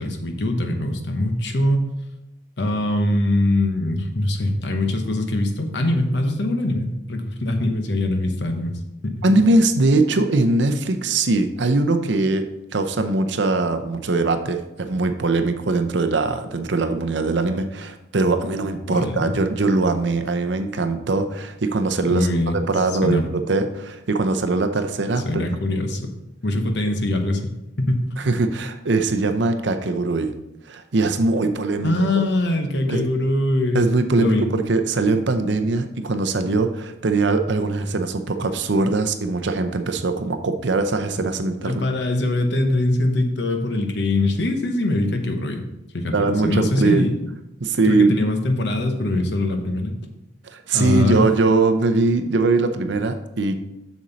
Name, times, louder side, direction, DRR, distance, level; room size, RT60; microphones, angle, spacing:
voice 1, 0.0-1.8 2.6-9.2 18.9-19.3 22.0-22.6 23.0-23.2 25.2-26.1 26.4-27.5 27.8-28.1 31.8-33.9 34.2-34.5 41.6-45.6 45.9-47.3 47.8-50.0 50.7-51.2, left 1 dB, 60° left, 5 dB, 0.9 m, -22 dB
voice 2, 9.2-12.5 12.7-22.3 22.7-25.4 28.2-30.3 30.7-31.9 32.9-33.0 33.7-41.8 46.1-47.1 47.6-48.2 50.4-53.6, right 3 dB, 65° right, 8 dB, 0.6 m, -21 dB
7.1 x 6.3 x 4.0 m, 0.90 s
head